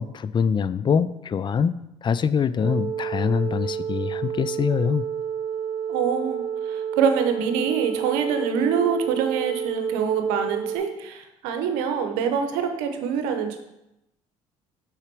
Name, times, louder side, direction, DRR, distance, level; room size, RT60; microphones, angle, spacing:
voice 1, 0.0-5.1, left 6 dB, 35° left, 15 dB, 0.4 m, -24 dB
sound 1, 2.6-10.8, right 8 dB, 40° right, 1.2 m, -30 dB
voice 2, 5.9-13.6, right 7 dB, 85° right, 6 dB, 0.8 m, -25 dB
5.8 x 4.9 x 4.6 m, 0.89 s
supercardioid pair, 65°, 13 cm